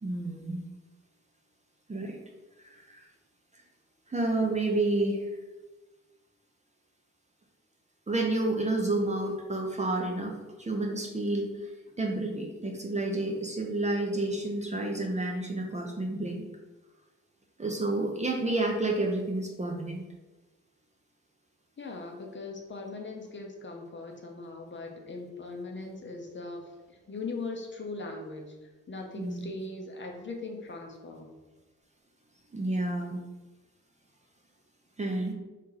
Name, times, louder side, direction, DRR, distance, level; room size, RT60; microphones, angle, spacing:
voice 1, 0.0-0.6 1.9-2.2 2.6-3.1 4.1-5.3 8.1-11.7 12.0-16.4 17.6-20.0 29.2-29.4 32.5-33.2 35.0-35.3, right 2 dB, 20° right, 1 dB, 0.5 m, -30 dB
voice 2, 21.8-31.3, left 3 dB, 35° left, 1 dB, 0.6 m, -40 dB
3.0 x 2.8 x 3.7 m, 1.2 s
cardioid pair, 85°, 32 cm